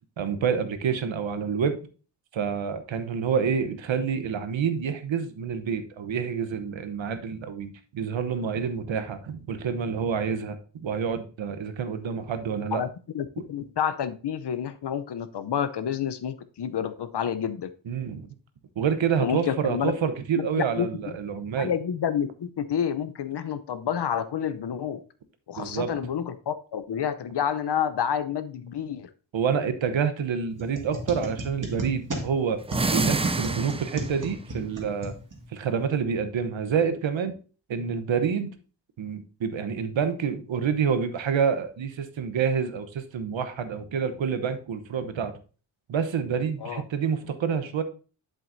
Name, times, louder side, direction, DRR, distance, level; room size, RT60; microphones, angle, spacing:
voice 1, 0.2-1.8 2.3-10.6 10.8-12.8 17.9-18.3 18.8-21.7 25.6-26.0 29.3-32.6 32.9-35.1 35.5-37.3 37.7-38.5 39.0-45.3 45.9-47.8, right 6 dB, 75° right, 9 dB, 1.0 m, -28 dB
voice 2, 13.1-17.7 19.2-19.9 20.3-21.2 21.6-25.0 25.5-29.1 46.6-46.8, left 8 dB, 60° left, 12 dB, 0.7 m, -29 dB
sound 1, 30.6-35.7, right 1 dB, 40° right, 2.0 m, -35 dB
sound 2, 32.6-34.2, right 3 dB, 15° right, 0.4 m, -27 dB
7.7 x 7.6 x 2.7 m, 0.37 s
cardioid pair, 75°, 46 cm